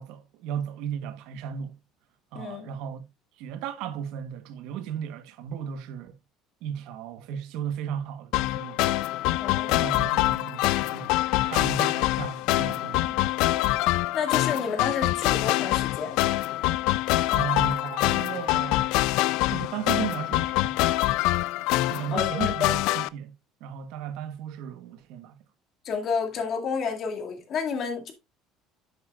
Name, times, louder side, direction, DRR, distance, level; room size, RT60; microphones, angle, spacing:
voice 1, 0.0-1.7 2.3-3.0 3.4-6.1 6.6-8.8 9.7-11.1 11.4-13.4 17.3-18.9 19.5-20.8 21.9-23.3 23.6-25.4, right 8 dB, 70° right, 1.2 m, -35 dB
voice 2, 2.3-2.7 9.4-9.9 14.1-16.2 22.1-22.3 22.6-22.7 25.8-28.1, left 6 dB, 40° left, 2.2 m, -30 dB
sound 1, 8.3-23.1, left 17 dB, 70° left, 0.4 m, -25 dB
9.9 x 8.0 x 2.4 m
cardioid pair, 150°, 0 cm